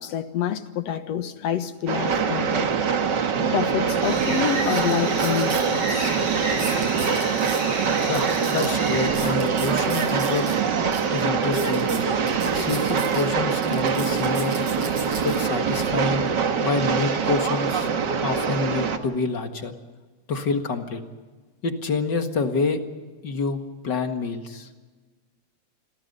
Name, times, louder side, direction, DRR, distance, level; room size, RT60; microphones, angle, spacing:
voice 1, 0.0-2.7 3.4-6.2, left 9 dB, 65° left, 10 dB, 2.3 m, -27 dB
Train, 1.9-19.0, right 6 dB, 45° right, 1.8 m, -24 dB
sound 1, 4.0-9.1, right 2 dB, 85° right, 9.4 m, -32 dB
sound 2, 4.6-5.7 6.0-6.1 6.5-7.6 8.0-10.6 10.9-11.0 11.4-13.2 13.6-15.4 16.0-16.3, right 3 dB, 65° right, 6.7 m, -37 dB
voice 2, 8.0-10.5 11.1-12.1 12.5-14.6 15.2-17.9 18.2-19.7 20.3-21.0 21.6-22.8 23.2-23.6 23.8-24.7, left 4 dB, 40° left, 6 dB, 2.0 m, -27 dB
28.5 x 22.5 x 5.4 m, 1.3 s
omnidirectional pair, 3.3 m